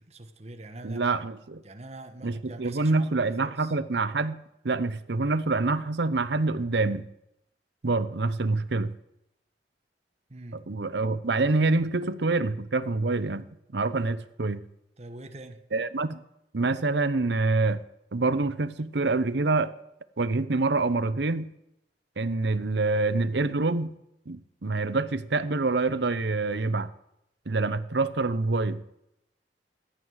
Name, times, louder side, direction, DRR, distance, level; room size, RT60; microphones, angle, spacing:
voice 1, 0.0-1.2 1.6-3.7 10.3-10.7 15.0-15.7, right 2 dB, 35° right, 1.2 m, -44 dB
voice 2, 0.8-1.4 2.2-4.4 4.6-7.1 7.8-8.9 10.7-14.6 15.7-16.2 16.5-17.8 18.1-19.7 20.2-21.5 22.2-23.9 24.3-26.9 27.5-28.8, right 3 dB, 70° right, 0.8 m, -26 dB
14.0 x 9.1 x 6.3 m
head